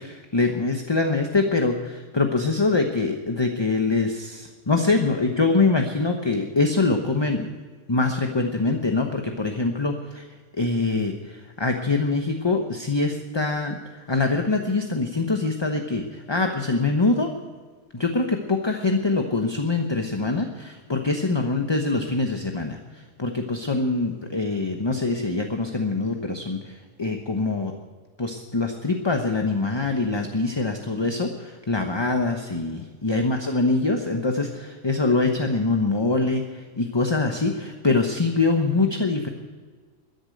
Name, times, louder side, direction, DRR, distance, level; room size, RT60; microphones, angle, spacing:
voice 1, 0.0-7.5 7.9-10.2 10.6-13.8 14.1-17.3 17.9-22.8 23.2-26.7 27.0-27.7 28.2-39.3, left 3 dB, 20° left, 4 dB, 0.9 m, -24 dB
13.5 x 10.5 x 7.8 m, 1.5 s
omnidirectional pair, 1.4 m